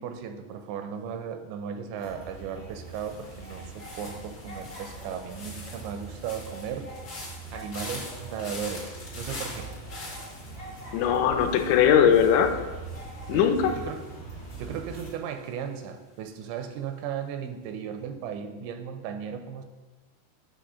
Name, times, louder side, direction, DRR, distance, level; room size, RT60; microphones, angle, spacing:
voice 1, 0.0-6.9 7.5-9.7 13.3-14.1 14.6-19.7, right 7 dB, 85° right, 7 dB, 2.8 m, -36 dB
sound 1, 2.0-15.1, right 3 dB, 30° left, 0.6 m, -42 dB
sound 2, 2.8-15.9 16.1-16.6, left 2 dB, 70° left, 1.0 m, -45 dB
voice 2, 10.9-12.5 13.3-13.7, left 8 dB, 85° left, 5 dB, 2.9 m, -20 dB
8.4 x 3.1 x 6.2 m, 1.2 s
omnidirectional pair, 5.1 m